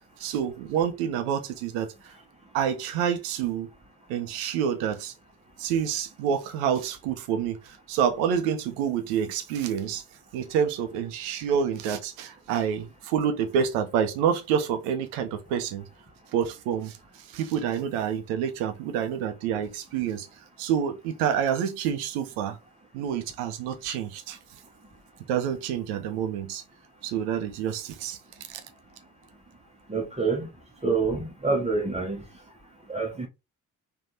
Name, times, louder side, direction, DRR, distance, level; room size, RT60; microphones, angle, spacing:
voice 1, 0.2-1.9 2.5-3.7 4.1-5.1 5.6-10.0 10.3-15.9 16.3-17.0 17.3-20.3 20.6-22.6 22.9-24.4 25.3-26.6 27.0-28.2 28.5-28.6, right 8 dB, 65° right, 0.7 m, -28 dB
voice 2, 29.9-30.5 30.8-32.2 32.9-33.3, right 4 dB, 15° right, 0.9 m, -26 dB
3.3 x 2.5 x 2.8 m
figure-of-eight pair, 40°, 44 cm